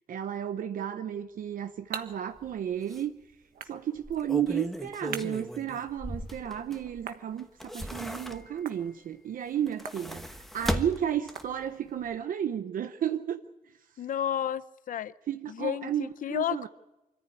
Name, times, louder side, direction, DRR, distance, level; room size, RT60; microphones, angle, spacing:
voice 1, 0.1-3.2 3.6-13.4 13.9-14.0 15.3-16.7, right 9 dB, 70° right, 9 dB, 0.8 m, -33 dB
sound 1, 1.2-12.1, right 8 dB, 85° right, 1.4 m, -48 dB
sound 2, 2.4-2.5 2.9-3.0 3.9-7.0 7.4-8.7 9.6-11.7 12.0-12.1, equal, ahead, 1.2 m, -36 dB
voice 2, 14.0-15.1 15.5-16.7, left 10 dB, 65° left, 15 dB, 0.7 m, -32 dB
25.0 x 14.5 x 9.1 m, 0.99 s
wide cardioid pair, 160°, 15 cm